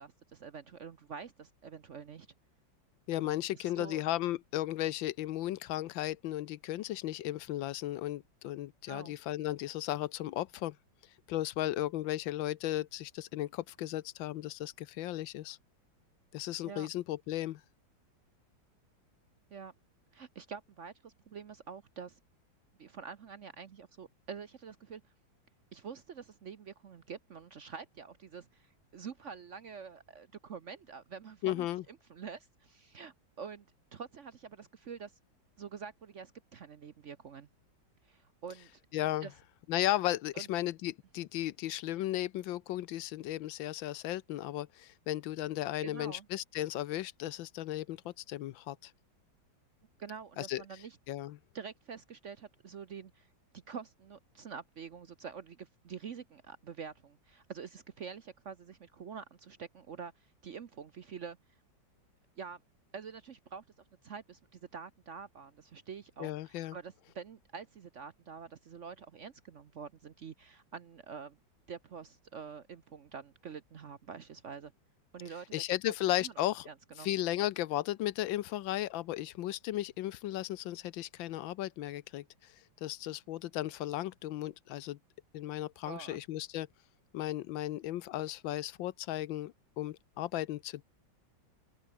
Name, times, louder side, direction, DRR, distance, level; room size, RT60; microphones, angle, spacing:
voice 1, 0.0-2.3 3.2-4.0 8.9-9.1 16.7-16.9 19.5-19.7 20.1-22.2 22.8-25.0 25.7-33.6 33.9-35.1 35.6-37.5 38.0-38.8 39.2-39.3 40.3-40.5 45.8-46.3 50.0-51.0 51.5-53.3 53.5-61.4 62.4-62.6 62.9-63.6 64.0-71.4 71.7-74.7 75.1-75.5 76.2-76.3 76.7-77.1 85.8-86.2, right 6 dB, 50° right, 0.9 m, -46 dB
voice 2, 3.1-10.8 11.3-15.6 16.3-17.6 31.4-31.8 38.9-39.3 39.7-48.9 50.4-50.6 51.1-51.4 66.2-66.8 75.5-76.7 77.0-82.5 82.8-85.0 85.3-86.7 87.1-90.9, left 14 dB, 85° left, 1.5 m, -35 dB
open air
omnidirectional pair, 2.1 m